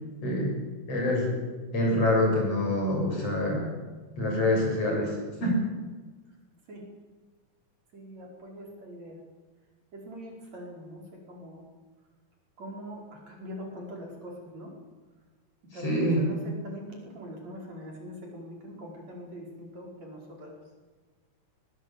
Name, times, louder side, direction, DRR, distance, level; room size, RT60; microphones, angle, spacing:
voice 1, 0.9-1.3 1.7-3.7 4.2-5.5 15.7-16.2, left 1 dB, 45° left, -1 dB, 8.5 m, -26 dB
voice 2, 7.9-9.2 9.9-11.6 12.6-14.7 15.7-20.6, equal, 55° right, 0 dB, 6.3 m, -43 dB
21.0 x 20.5 x 9.0 m, 1.3 s
omnidirectional pair, 3.7 m